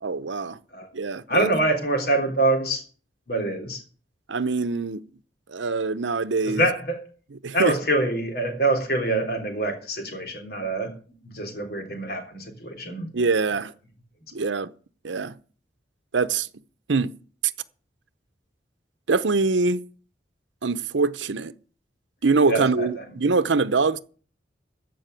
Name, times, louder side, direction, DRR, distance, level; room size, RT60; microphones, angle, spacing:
voice 1, 0.0-0.6 0.9-1.5 4.3-5.0 5.5-6.6 7.4-7.7 13.1-13.7 14.3-14.7 15.0-15.3 16.1-16.5 16.9-17.1 19.1-19.8 20.6-21.5 22.2-24.0, right 4 dB, 80° right, 0.7 m, -23 dB
voice 2, 1.3-2.8 3.3-3.8 6.4-7.0 7.5-10.9 11.2-13.1 14.4-14.5 22.5-23.0, right 2 dB, 55° left, 3.3 m, -25 dB
14.5 x 5.4 x 9.3 m
head